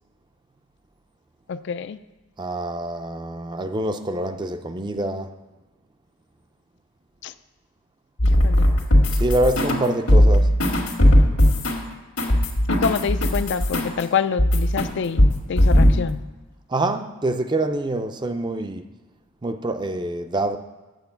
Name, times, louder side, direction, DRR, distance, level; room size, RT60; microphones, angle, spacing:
voice 1, 1.5-2.0 7.2-7.3 8.4-8.7 12.7-16.2, left 6 dB, 55° left, 0.4 m, -26 dB
voice 2, 2.4-5.3 9.1-10.5 16.7-18.9 19.4-20.6, right 1 dB, 20° right, 0.4 m, -25 dB
sound 1, 8.2-9.8 10.1-14.0 14.4-14.9 15.2-16.0, equal, 85° left, 1.7 m, -17 dB
9.0 x 7.5 x 5.7 m
head